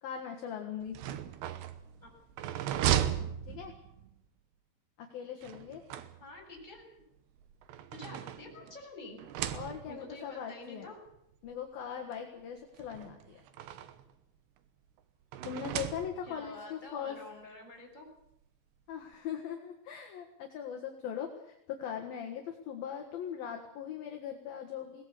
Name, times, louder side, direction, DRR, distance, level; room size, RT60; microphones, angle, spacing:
voice 1, 0.0-1.0 3.4-3.7 5.0-5.8 9.5-10.9 11.4-13.4 15.4-17.2 18.9-25.0, left 8 dB, 60° left, 3 dB, 3.1 m, -40 dB
sound 1, 0.8-4.1 5.4-6.6 7.4-8.8 9.2-10.1 11.1-11.2 11.5-11.6 12.8-14.1 15.3-16.5, right 11 dB, 70° right, 3.1 m, -36 dB
voice 2, 6.2-6.8 7.9-9.2 9.9-11.0 16.3-18.1, left 2 dB, 10° left, -1 dB, 6.6 m, -48 dB
21.5 x 19.0 x 8.4 m, 0.79 s
omnidirectional pair, 5.4 m